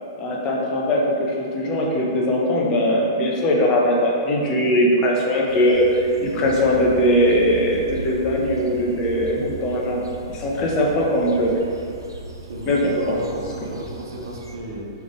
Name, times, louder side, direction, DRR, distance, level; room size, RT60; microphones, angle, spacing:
voice 1, 0.2-10.0 10.3-11.5 12.7-13.2, equal, 30° left, -2 dB, 1.0 m, -20 dB
sound 1, 5.5-14.6, right 2 dB, 80° right, 0.6 m, -38 dB
voice 2, 12.5-14.9, right 1 dB, 60° right, -2 dB, 1.1 m, -33 dB
5.4 x 3.5 x 5.0 m, 2.5 s
figure-of-eight pair, 110°, 2 cm